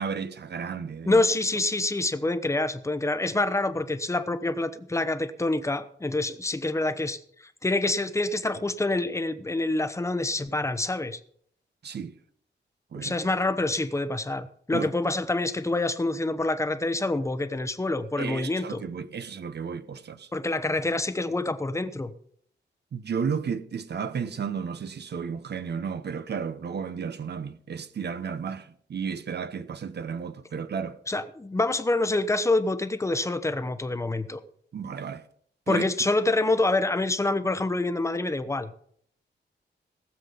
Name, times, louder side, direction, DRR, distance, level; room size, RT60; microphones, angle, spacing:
voice 1, 0.0-1.2 11.8-12.2 12.9-13.2 14.7-14.9 18.2-20.3 22.9-31.0 34.7-35.3 35.7-35.9, right 6 dB, 60° right, 0.9 m, -33 dB
voice 2, 1.1-7.2 7.6-11.2 13.0-18.8 20.3-22.1 31.1-34.4 35.7-38.7, left 2 dB, 15° left, 0.9 m, -26 dB
18.5 x 7.6 x 5.5 m
wide cardioid pair, 145°, 19 cm